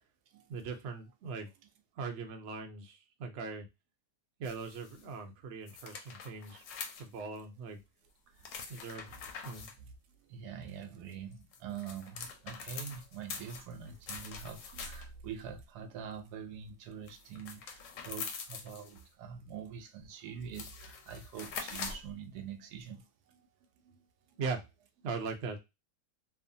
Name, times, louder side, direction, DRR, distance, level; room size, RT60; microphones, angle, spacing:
voice 1, 0.5-1.5 2.0-3.7 4.4-6.6 7.0-7.8 8.7-9.2 9.4-9.7 24.4-24.6 25.0-25.6, right 4 dB, 90° right, 0.6 m, -40 dB
sound 1, 4.4-5.0 5.7-7.4 8.4-9.8 11.3-15.2 17.1-19.0 20.0-20.1 20.4-22.1, left 5 dB, 85° left, 1.3 m, -44 dB
voice 2, 8.4-8.9 9.6-9.9 10.2-23.1, right 7 dB, 70° right, 1.0 m, -45 dB
3.1 x 2.1 x 2.6 m
omnidirectional pair, 1.9 m